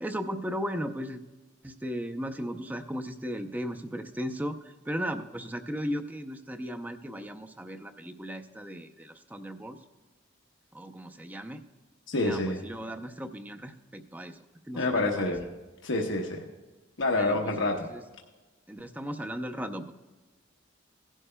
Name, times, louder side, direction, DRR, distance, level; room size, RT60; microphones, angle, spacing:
voice 1, 0.0-1.2 1.6-4.6 4.9-9.8 10.7-11.6 12.1-14.4 14.7-15.3 17.1-17.7 17.9-18.0 18.7-19.9, equal, 10° right, 6 dB, 0.5 m, -36 dB
voice 2, 12.1-12.6 14.7-15.5 15.8-16.4 17.0-17.9, left 2 dB, 85° left, 1 dB, 1.0 m, -27 dB
16.5 x 11.0 x 2.2 m, 1.2 s
head